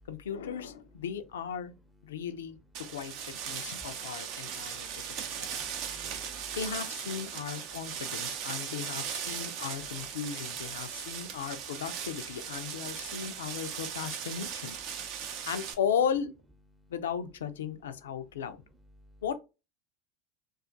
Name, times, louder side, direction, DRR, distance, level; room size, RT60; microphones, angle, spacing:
voice 1, 0.1-1.7 2.0-2.6 2.9-5.6 6.6-14.8 15.5-16.3 16.9-18.6 19.2-19.3, left 7 dB, 80° left, 0.3 m, -36 dB
sound 1, 2.7-15.7, right 8 dB, 55° right, 0.4 m, -38 dB
voice 2, 3.5-6.6 9.3-9.6 10.1-10.2 10.8-11.4 13.1-13.8 14.9-15.5 16.7-16.9 18.1-18.2 19.0-19.2, equal, 15° right, 0.6 m, -57 dB
2.4 x 2.3 x 2.4 m
hypercardioid pair, 85°, 0 cm